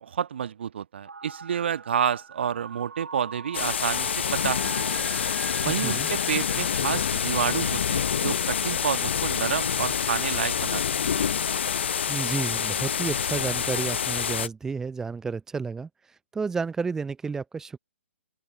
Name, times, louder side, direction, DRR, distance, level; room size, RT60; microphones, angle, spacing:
voice 1, 0.0-5.0 5.6-10.8, right 8 dB, 50° right, 1.4 m, -29 dB
sound 1, 1.0-8.3, right 4 dB, 70° right, 2.5 m, -42 dB
sound 2, 3.5-14.5, left 7 dB, 55° left, 0.8 m, -27 dB
voice 2, 5.7-6.1 12.1-15.9 16.3-17.8, right 5 dB, 5° right, 0.7 m, -31 dB
open air
figure-of-eight pair, 125°, 7 cm